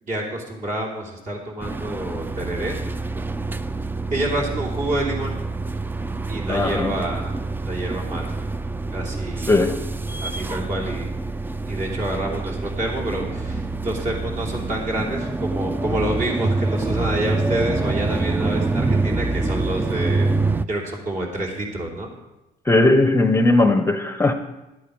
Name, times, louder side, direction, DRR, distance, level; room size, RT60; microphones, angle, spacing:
voice 1, 0.0-2.8 4.1-5.3 6.3-7.4 7.6-8.4 8.9-9.6 10.2-11.1 11.6-20.3 20.7-22.1, right 1 dB, 50° right, 3.1 m, -28 dB
sound 1, 1.6-20.7, right 3 dB, 10° right, 0.4 m, -26 dB
voice 2, 6.5-7.0 9.5-9.8 22.7-24.3, left 2 dB, 15° left, 0.7 m, -18 dB
11.5 x 8.5 x 5.2 m
cardioid pair, 110°, 17 cm